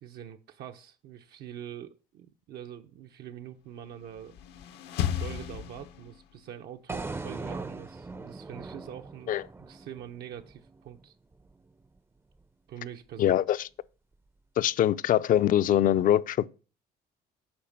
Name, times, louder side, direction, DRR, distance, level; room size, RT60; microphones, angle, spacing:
voice 1, 0.0-4.4 5.1-11.1 12.7-13.4, right 10 dB, 70° right, 0.8 m, -44 dB
sound 1, 4.0-6.4, left 10 dB, 80° left, 0.9 m, -34 dB
sound 2, 6.9-11.0, right 3 dB, 15° right, 0.5 m, -40 dB
voice 2, 13.2-13.7 14.6-16.5, left 11 dB, 55° left, 0.5 m, -23 dB
8.7 x 5.1 x 7.3 m
cardioid pair, 110°, 17 cm